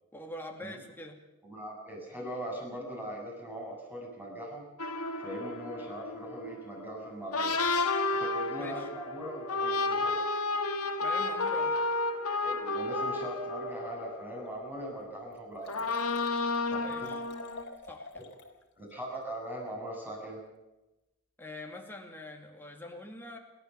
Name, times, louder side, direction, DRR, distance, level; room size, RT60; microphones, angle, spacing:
voice 1, 0.1-1.2 8.6-8.9 11.0-11.8 16.8-17.2 17.9-18.2 21.4-23.4, left 1 dB, 10° left, 1 dB, 2.5 m, -44 dB
voice 2, 1.4-4.6 5.2-7.6 8.1-10.1 12.4-16.0 16.7-17.1 18.8-20.4, equal, 10° right, -1 dB, 7.4 m, -40 dB
sound 1, 4.8-15.1 15.6-17.6, left 3 dB, 80° left, 1.9 m, -32 dB
Liquid, 14.5-14.6 15.0-15.1 15.3-18.5 18.9-19.0, left 3 dB, 50° left, 3.0 m, -49 dB
30.0 x 13.0 x 7.1 m, 0.99 s
head